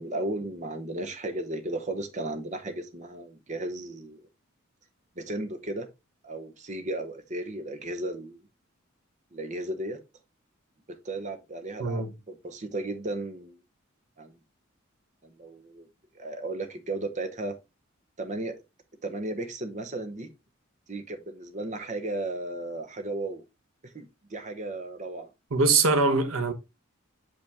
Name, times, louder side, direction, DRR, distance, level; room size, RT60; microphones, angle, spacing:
voice 1, 0.0-4.3 5.2-5.9 6.2-8.4 9.3-10.0 10.9-13.6 14.2-14.3 15.2-15.9 16.1-17.6 18.2-18.6 19.0-20.3 20.9-23.4 23.9-25.3, right 2 dB, 35° right, 0.9 m, -35 dB
voice 2, 11.8-12.1 25.5-26.5, right 3 dB, 85° right, 1.1 m, -23 dB
6.9 x 5.4 x 3.4 m
head